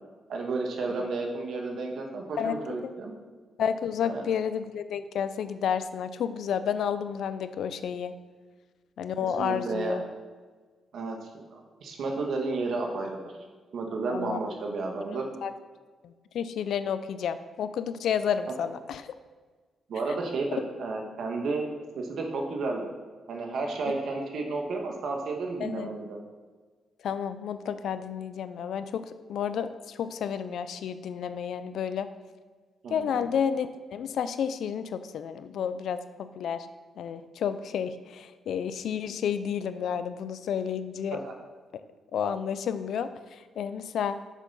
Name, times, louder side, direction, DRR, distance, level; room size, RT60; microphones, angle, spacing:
voice 1, 0.3-3.1 4.0-4.2 9.4-10.0 10.9-11.2 11.5-13.2 13.7-15.3 19.9-21.7 21.9-22.8 23.3-26.2 32.8-33.2 41.1-41.3, right 3 dB, 65° right, 2 dB, 1.5 m, -32 dB
voice 2, 3.6-8.1 9.0-10.0 14.1-14.4 15.1-15.5 16.0-19.1 25.6-25.9 27.0-32.1 32.9-36.7 37.0-41.2 42.1-44.2, left 8 dB, 75° left, 12 dB, 0.5 m, -31 dB
7.2 x 6.8 x 5.5 m, 1.4 s
cardioid pair, 95°, 0 cm